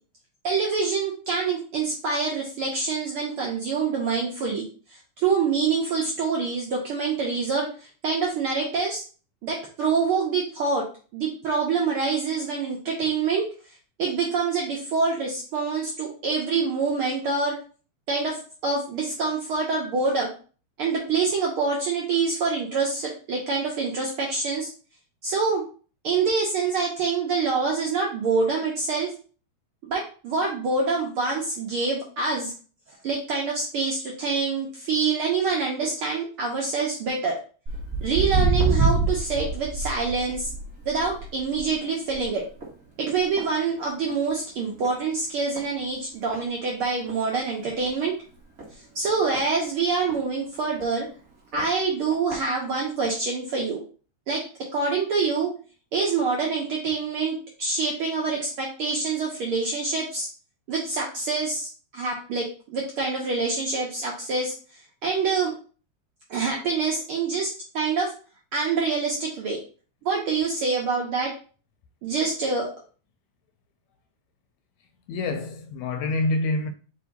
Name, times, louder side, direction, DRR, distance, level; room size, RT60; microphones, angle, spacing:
voice 1, 0.4-4.6 5.2-7.7 8.0-9.0 9.4-10.8 11.1-13.5 14.0-17.5 18.1-20.3 20.8-24.7 25.2-25.6 26.0-29.1 29.8-32.5 33.0-37.3 38.0-40.5 40.8-42.4 43.0-48.1 48.9-51.1 51.5-53.8 54.3-54.4 54.7-55.5 55.9-60.3 60.7-64.5 65.0-65.5 66.3-68.1 68.5-69.6 70.0-71.3 72.0-72.7, right 4 dB, 70° right, 1.3 m, -26 dB
Walk footsteps, 37.7-44.3 44.6-45.0 45.6-45.7 46.3-46.4 46.8-46.9 47.1-47.2 47.8-47.9 48.6-50.2 50.8-50.9 51.6-51.7 52.1-52.4 53.0-53.1, right 3 dB, 35° right, 1.4 m, -27 dB
voice 2, 75.1-76.7, left 2 dB, 80° left, 1.7 m, -26 dB
4.8 x 2.7 x 4.0 m
omnidirectional pair, 3.5 m